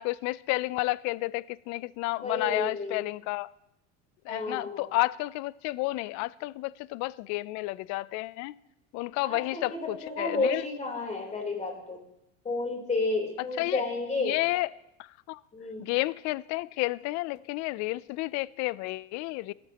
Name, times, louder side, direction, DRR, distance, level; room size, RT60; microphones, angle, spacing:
voice 1, 0.0-3.5 4.3-8.5 8.9-10.6 13.6-13.8 14.2-14.7 15.0-15.4 15.8-19.5, left 20 dB, 45° left, 0.4 m, -31 dB
voice 2, 2.2-3.0 4.3-4.9 9.2-12.0 12.4-14.4 15.5-15.8, left 3 dB, 20° left, 3.6 m, -31 dB
23.0 x 14.0 x 2.9 m
supercardioid pair, 135°, 38 cm